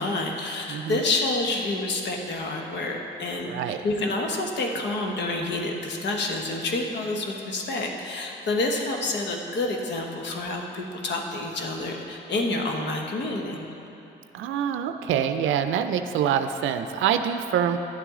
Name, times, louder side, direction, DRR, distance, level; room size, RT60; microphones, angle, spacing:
voice 1, 0.0-13.7, left 2 dB, 60° left, 1 dB, 1.1 m, -28 dB
voice 2, 0.7-1.0 3.5-3.8 14.3-17.8, right 9 dB, 80° right, 8 dB, 0.5 m, -25 dB
10.5 x 8.4 x 3.7 m, 3.0 s
cardioid pair, 90°, 20 cm